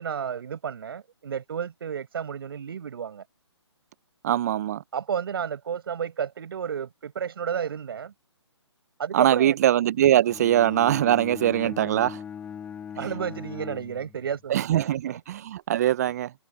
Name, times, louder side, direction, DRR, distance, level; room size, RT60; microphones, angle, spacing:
voice 1, 0.0-3.2 4.9-8.1 9.0-9.5 11.6-11.7 13.0-15.2, right 7 dB, 55° right, 6.2 m, -32 dB
voice 2, 4.2-4.8 9.1-12.2 14.5-16.3, right 11 dB, 35° right, 0.7 m, -22 dB
Bowed string instrument, 10.3-14.5, left 8 dB, 10° left, 1.7 m, -40 dB
figure-of-eight pair, 140°, 15 cm